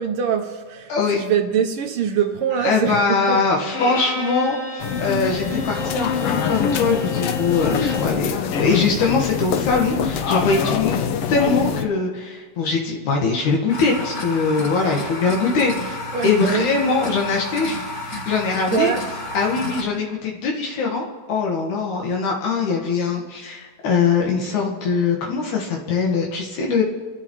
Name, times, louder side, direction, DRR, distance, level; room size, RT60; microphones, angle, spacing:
voice 1, 0.0-3.4 14.8-15.1 16.1-16.7 18.7-19.1, right 8 dB, 85° right, 1.2 m, -23 dB
voice 2, 2.6-16.0 16.2-18.9 19.3-26.8, left 4 dB, 75° left, 2.8 m, -22 dB
Bowed string instrument, 3.7-8.2, left 3 dB, 55° left, 4.3 m, -31 dB
sound 1, 4.8-11.8, left 7 dB, 90° left, 1.2 m, -24 dB
sound 2, 13.7-19.8, left 2 dB, 35° left, 2.4 m, -31 dB
29.0 x 13.0 x 3.0 m
omnidirectional pair, 3.5 m